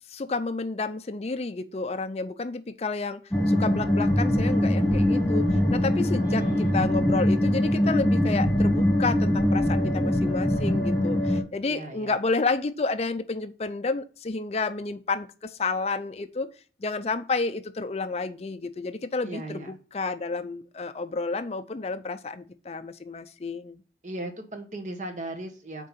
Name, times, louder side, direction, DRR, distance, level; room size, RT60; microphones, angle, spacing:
voice 1, 0.1-3.2 3.5-16.5 16.8-23.8, left 3 dB, 35° left, 11 dB, 0.5 m, -30 dB
sound 1, 3.3-11.4, left 1 dB, 5° left, 1.8 m, -23 dB
voice 2, 6.3-6.8 11.7-12.2 19.2-19.7 24.0-25.9, right 1 dB, 45° right, 5 dB, 1.3 m, -37 dB
6.5 x 4.6 x 5.6 m, 0.38 s
head